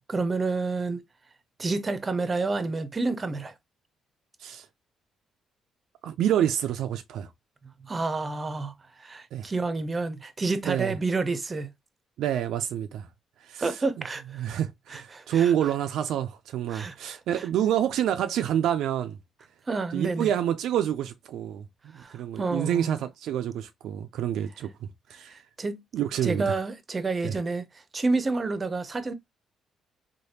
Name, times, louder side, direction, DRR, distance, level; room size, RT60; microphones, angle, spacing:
voice 1, 0.1-1.0 1.6-3.5 7.8-11.7 13.6-14.5 14.9-15.5 16.7-17.4 19.7-20.3 22.0-23.0 25.6-25.8 26.2-27.7 27.9-29.1, right 3 dB, 30° right, 0.6 m, -29 dB
voice 2, 6.0-7.3 9.3-9.5 10.6-11.0 12.2-13.1 13.4-14.0 14.3-19.2 19.9-25.4 25.9-26.6 27.2-27.4, right 10 dB, 80° right, 0.3 m, -28 dB
3.2 x 2.2 x 2.7 m
cardioid pair, 75°, 0 cm